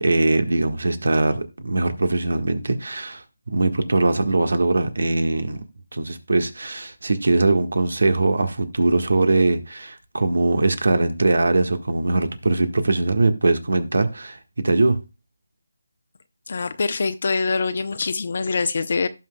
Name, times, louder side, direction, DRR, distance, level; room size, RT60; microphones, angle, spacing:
voice 1, 0.0-5.6 5.9-14.4 14.6-15.0, right 2 dB, 75° right, 8 dB, 1.5 m, -21 dB
voice 2, 16.5-19.1, left 4 dB, 55° left, 10 dB, 0.8 m, -24 dB
17.5 x 6.0 x 2.3 m, 0.27 s
figure-of-eight pair, 160°, 0 cm